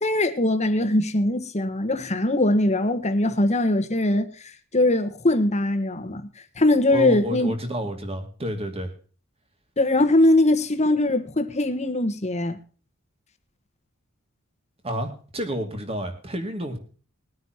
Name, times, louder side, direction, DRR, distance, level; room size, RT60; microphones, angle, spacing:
voice 1, 0.0-4.3 4.7-6.3 6.6-7.5 9.8-12.6, left 1 dB, 30° left, 1.4 m, -21 dB
voice 2, 6.9-8.9 14.8-16.8, equal, 30° right, 2.5 m, -30 dB
21.0 x 9.5 x 3.0 m
head